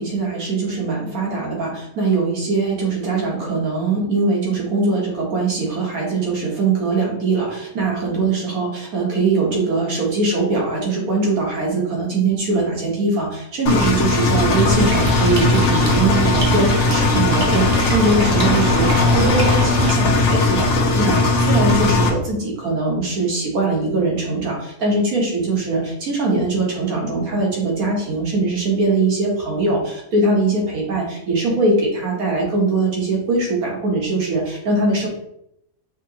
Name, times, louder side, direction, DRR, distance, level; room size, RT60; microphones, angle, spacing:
voice 1, 0.0-35.1, right 3 dB, 80° right, -2 dB, 1.8 m, -21 dB
Engine, 13.7-22.1, left 3 dB, 75° left, 1.1 m, -18 dB
sound 1, 14.7-19.9, right 2 dB, 60° right, 1.3 m, -26 dB
5.7 x 2.9 x 2.9 m, 0.78 s
omnidirectional pair, 1.5 m